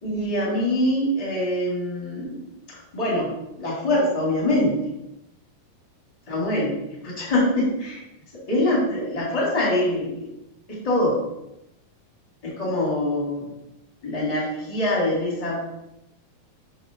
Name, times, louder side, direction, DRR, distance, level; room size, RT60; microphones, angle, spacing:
voice 1, 0.0-2.4 2.9-3.3 3.6-4.8 6.3-8.0 8.5-10.3 10.7-11.2 12.4-13.5 14.0-15.6, left 1 dB, 20° left, -4 dB, 1.1 m, -24 dB
6.6 x 2.9 x 5.7 m, 0.89 s
omnidirectional pair, 3.9 m